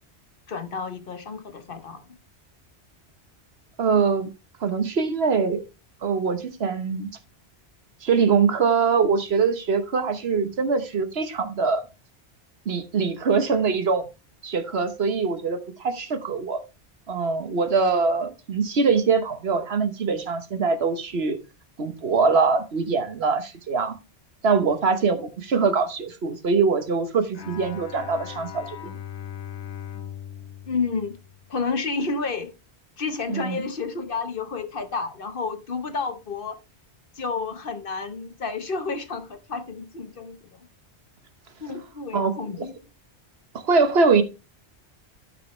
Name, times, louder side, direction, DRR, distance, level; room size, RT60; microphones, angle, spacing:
voice 1, 0.5-2.0 30.7-31.2 31.5-32.5 33.0-36.6 37.1-40.6 41.6-42.7, left 4 dB, 55° left, 1.2 m, -30 dB
voice 2, 3.8-4.3 4.6-5.6 6.0-7.1 8.0-11.8 12.7-14.0 14.4-16.6 17.1-21.4 21.8-23.9 24.4-28.8 33.3-33.6 42.1-42.7 43.5-44.2, right 5 dB, 65° right, 1.3 m, -23 dB
Bowed string instrument, 27.3-31.8, left 9 dB, 85° left, 1.3 m, -39 dB
13.0 x 5.8 x 3.1 m
omnidirectional pair, 1.1 m